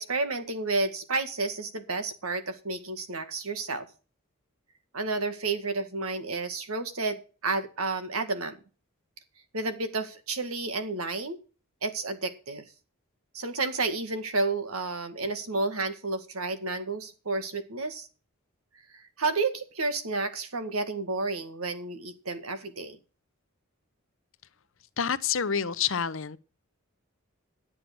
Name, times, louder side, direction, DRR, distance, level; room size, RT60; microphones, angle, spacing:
voice 1, 0.0-3.9 4.9-8.6 9.5-11.4 11.8-12.7 13.3-18.1 18.9-23.0, right 3 dB, 85° right, 1.9 m, -31 dB
voice 2, 25.0-26.4, left 7 dB, 65° left, 0.8 m, -28 dB
11.0 x 7.9 x 6.1 m
head